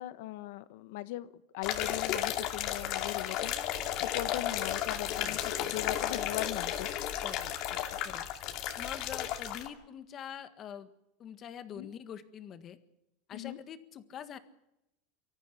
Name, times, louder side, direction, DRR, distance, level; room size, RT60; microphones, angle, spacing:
voice 1, 0.0-3.6 4.0-7.2 11.7-11.9 13.3-13.6, left 16 dB, 65° left, 14 dB, 1.1 m, -39 dB
sound 1, 1.6-9.7, left 11 dB, 45° left, 2.5 m, -34 dB
voice 2, 5.2-5.8 7.2-8.2 8.8-10.9 11.2-12.8 13.3-14.4, left 9 dB, 30° left, 11 dB, 1.6 m, -45 dB
24.5 x 14.0 x 8.3 m, 0.86 s
supercardioid pair, 160°, 0 cm